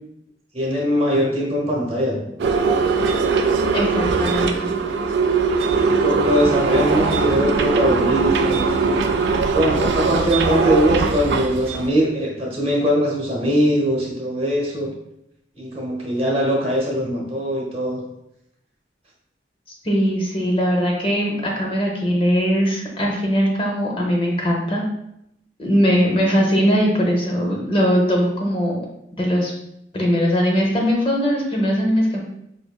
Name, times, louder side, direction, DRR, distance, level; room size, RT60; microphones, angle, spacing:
voice 1, 0.5-2.5 5.7-8.9 9.5-14.9 15.6-18.0, equal, 35° right, -2 dB, 0.9 m, -21 dB
sound 1, 2.4-11.9, right 4 dB, 65° right, 0.3 m, -20 dB
voice 2, 3.7-4.7 19.8-24.9 25.6-28.8 29.2-29.5 29.9-32.2, equal, 30° left, -1 dB, 0.5 m, -20 dB
4.7 x 2.6 x 2.2 m, 0.80 s
head